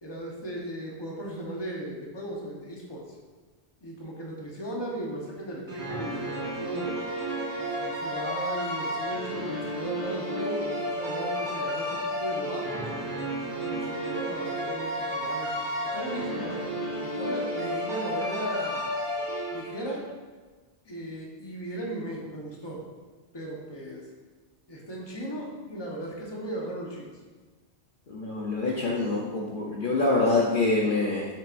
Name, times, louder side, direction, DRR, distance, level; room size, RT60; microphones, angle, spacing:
voice 1, 0.0-3.0 3.8-6.9 7.5-12.9 13.6-18.9 19.5-20.0 20.8-22.8 23.3-24.0 24.7-27.1 30.2-30.4, right 1 dB, 25° left, -2 dB, 1.1 m, -37 dB
sound 1, 5.7-20.0, equal, 45° right, 2.5 m, -32 dB
voice 2, 28.1-31.3, left 2 dB, 50° left, -4 dB, 0.9 m, -25 dB
7.5 x 6.8 x 2.6 m, 1.4 s
omnidirectional pair, 1.2 m